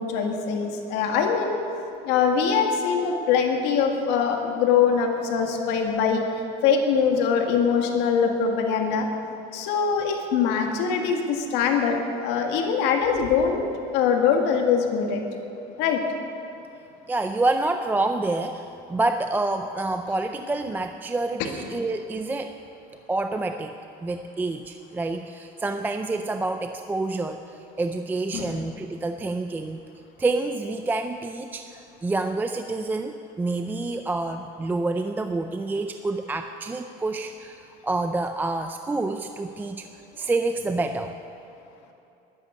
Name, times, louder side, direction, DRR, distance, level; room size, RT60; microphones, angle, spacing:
voice 1, 0.0-1.6 2.0-6.2 6.6-9.1 9.5-13.6 13.9-15.2 15.8-16.0 28.3-28.6, left 6 dB, 80° left, 3 dB, 1.9 m, -23 dB
voice 2, 17.1-22.6 23.1-23.7 24.0-29.8 30.2-39.9 40.2-41.2, right 2 dB, 10° right, 7 dB, 0.4 m, -28 dB
12.0 x 11.0 x 9.4 m, 2.8 s
cardioid pair, 155°, 18 cm